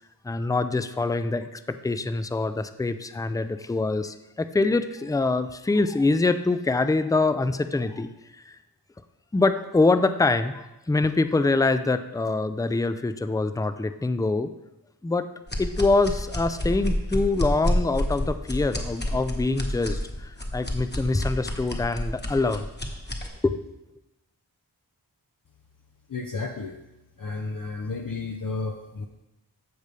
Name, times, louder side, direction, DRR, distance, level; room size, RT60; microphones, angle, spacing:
voice 1, 0.2-8.1 8.5-8.6 9.3-14.5 15.0-15.2 15.6-22.7 23.4-23.6, left 3 dB, 10° left, 11 dB, 0.4 m, -24 dB
sound 1, 15.5-23.3, left 1 dB, 25° left, 1.2 m, -29 dB
voice 2, 26.1-26.8 27.2-29.1, left 3 dB, 55° left, 2 dB, 0.7 m, -32 dB
14.5 x 5.2 x 3.4 m, 0.95 s
wide cardioid pair, 45°, 40 cm